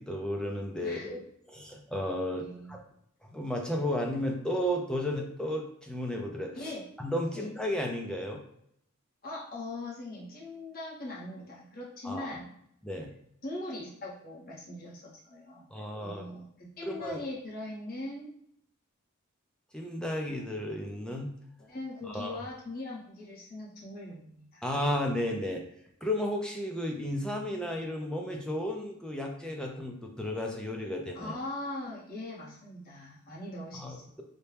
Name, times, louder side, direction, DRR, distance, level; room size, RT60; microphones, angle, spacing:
voice 1, 0.0-2.8 3.2-6.7 7.0-8.4 12.0-12.4 12.8-13.1 15.7-16.3 16.8-17.2 19.7-21.3 22.0-22.4 24.6-25.6 26.0-31.3 33.7-34.2, left 1 dB, 5° left, 1 dB, 0.5 m, -33 dB
voice 2, 0.8-1.1 2.4-2.7 6.5-6.9 7.3-7.5 9.2-12.5 13.4-15.7 16.0-18.3 21.6-24.6 31.1-34.2, left 2 dB, 45° left, -5 dB, 1.1 m, -41 dB
4.1 x 2.2 x 3.4 m, 0.71 s
head